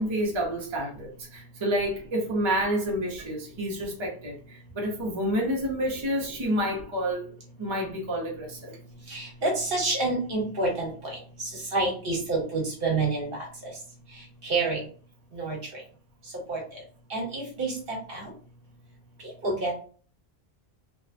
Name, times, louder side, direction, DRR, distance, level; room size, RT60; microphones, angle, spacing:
voice 1, 0.0-7.2 7.6-8.8, equal, 35° right, 0.5 m, -29 dB
voice 2, 9.1-13.4 14.4-14.8 15.3-15.6 16.5-16.6 17.1-18.3 19.4-19.7, right 3 dB, 55° right, 1.1 m, -28 dB
2.6 x 2.1 x 2.5 m
omnidirectional pair, 1.2 m